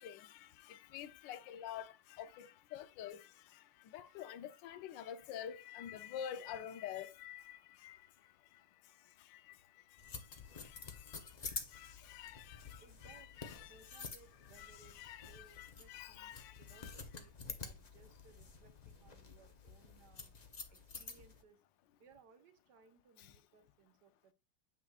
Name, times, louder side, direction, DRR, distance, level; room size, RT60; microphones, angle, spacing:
voice 1, 0.0-3.3 3.9-8.0 10.6-10.8 11.1-11.2 11.7-14.0 14.6-16.9, left 10 dB, 75° left, 1.3 m, -48 dB
sound 1, 10.0-21.4, left 4 dB, 50° left, 0.4 m, -50 dB
voice 2, 12.8-13.4 13.6-15.0 15.3-20.3 20.7-21.6 22.0-24.3, right 5 dB, 65° right, 1.5 m, -65 dB
7.9 x 5.9 x 2.3 m
omnidirectional pair, 2.1 m